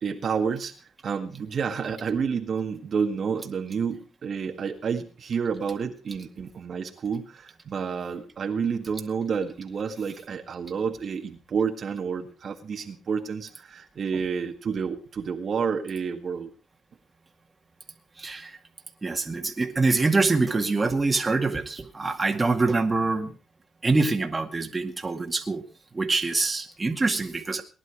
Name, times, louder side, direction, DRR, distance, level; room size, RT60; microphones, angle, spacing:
voice 1, 0.0-0.7 1.0-16.5, right 6 dB, 50° right, 4 dB, 1.8 m, -29 dB
voice 2, 18.2-18.6 19.0-23.3 23.8-25.6 25.9-27.6, right 3 dB, 25° right, 4 dB, 2.1 m, -25 dB
19.0 x 11.0 x 4.8 m, 0.36 s
cardioid pair, 90°, 0 cm